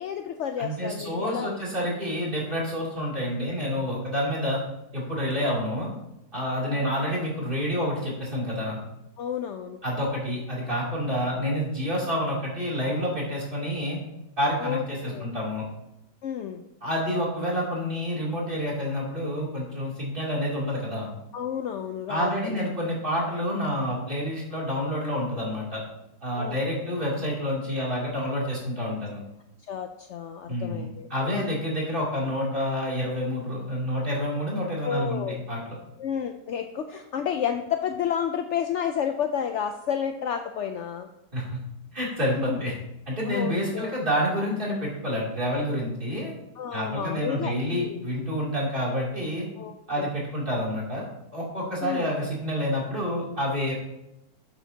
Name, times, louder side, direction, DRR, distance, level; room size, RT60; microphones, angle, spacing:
voice 1, 0.0-1.6 6.6-7.2 9.2-9.8 14.6-15.3 16.2-16.6 21.3-22.6 26.4-27.0 29.7-31.5 34.8-35.4 36.0-41.1 42.5-42.6 43.3-43.9 46.6-48.0 49.6-50.1 51.8-52.1, left 8 dB, 70° left, 6 dB, 0.6 m, -31 dB
voice 2, 0.6-4.6 4.9-5.9 6.3-8.8 9.8-14.0 14.4-15.6 16.8-21.1 22.1-25.8 26.2-29.2 30.5-35.6 41.3-41.4 41.9-42.7 43.1-46.3 46.7-49.4 49.9-51.0 51.3-53.7, equal, 30° right, -5 dB, 3.1 m, -28 dB
11.5 x 7.8 x 2.8 m, 0.87 s
omnidirectional pair, 1.8 m